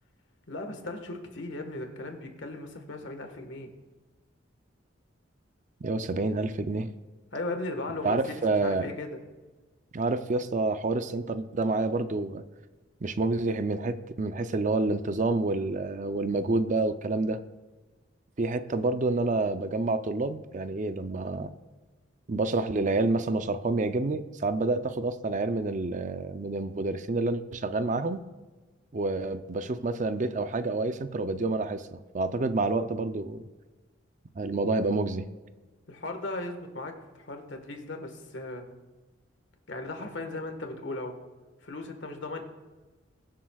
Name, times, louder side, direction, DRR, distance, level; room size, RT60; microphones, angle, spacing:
voice 1, 0.5-3.7 7.3-9.2 35.9-38.6 39.7-41.1 41.6-42.4, left 2 dB, 70° left, 5 dB, 1.5 m, -37 dB
voice 2, 5.8-6.9 8.0-8.9 9.9-12.4 13.0-17.4 18.4-21.5 22.3-28.2 28.9-33.4 34.4-35.3, right 3 dB, 40° right, 10 dB, 0.5 m, -28 dB
22.5 x 7.6 x 2.4 m, 1.3 s
head